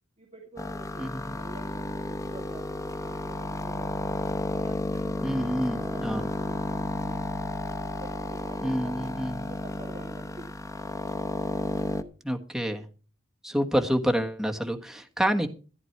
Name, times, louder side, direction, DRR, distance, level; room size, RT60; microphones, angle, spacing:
voice 1, 0.2-3.9 4.5-7.5 7.9-9.2 9.5-10.5, right 2 dB, 30° right, 2 dB, 2.1 m, -47 dB
sound 1, 0.6-12.0, left 1 dB, 15° left, 0.8 m, -32 dB
voice 2, 1.0-1.3 5.2-6.3 8.6-9.4 12.2-12.8 13.4-15.5, equal, ahead, 3 dB, 1.5 m, -28 dB
14.0 x 10.5 x 4.6 m, 0.37 s
head